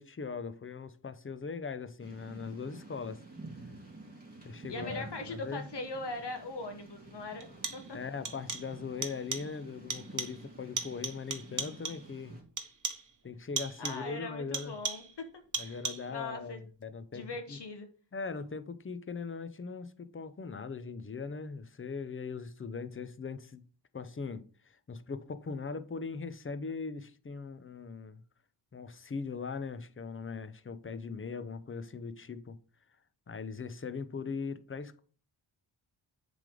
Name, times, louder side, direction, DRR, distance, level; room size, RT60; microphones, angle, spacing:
voice 1, 0.0-3.2 4.4-5.6 7.9-12.4 13.2-14.7 15.6-17.6 18.1-23.6 23.9-28.2 28.7-32.6 33.3-35.0, left 5 dB, 25° left, 0.6 m, -40 dB
Thunder / Rain, 2.0-12.4, right 2 dB, 20° right, 3.3 m, -50 dB
voice 2, 4.7-7.5 7.7-8.0 13.8-15.0 15.6-15.8 16.1-16.6 17.1-17.9, left 2 dB, 55° left, 1.1 m, -40 dB
sound 1, 6.4-6.5 7.4-8.0 8.2-8.8 9.0-9.6 9.9-10.5 10.8-12.1 12.6-13.1 13.6-14.1 14.5-15.2 15.5-16.2, right 4 dB, 40° right, 1.1 m, -38 dB
7.3 x 3.4 x 5.0 m
cardioid pair, 70°, 49 cm